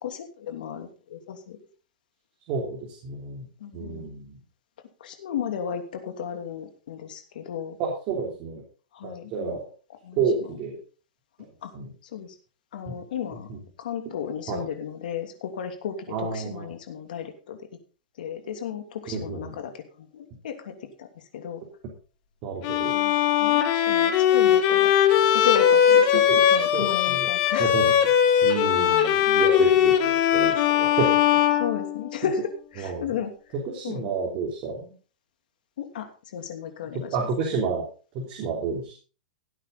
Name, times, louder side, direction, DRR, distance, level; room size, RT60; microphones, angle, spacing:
voice 1, 0.0-1.6 3.6-4.1 5.0-7.8 8.9-9.6 10.0-10.2 11.6-11.7 12.1-12.3 12.7-13.5 13.8-17.6 18.2-21.1 21.3-21.6 22.9-24.9 25.3-27.7 31.5-33.3 33.8-34.1 35.8-37.1, left 8 dB, 70° left, 6 dB, 2.9 m, -34 dB
voice 2, 2.5-3.5 3.7-4.4 7.8-8.6 9.0-9.6 10.2-10.8 11.7-11.9 12.9-13.0 13.5-13.6 14.5-14.6 16.1-16.7 19.1-19.6 22.4-23.0 26.1-27.3 27.6-28.0 28.4-31.4 32.8-33.1 33.5-34.9 36.9-37.8 38.1-39.0, right 5 dB, 35° right, -1 dB, 3.5 m, -30 dB
Bowed string instrument, 22.6-32.4, left 9 dB, 35° left, 1.8 m, -20 dB
17.0 x 9.1 x 4.1 m, 0.37 s
supercardioid pair, 155°, 5 cm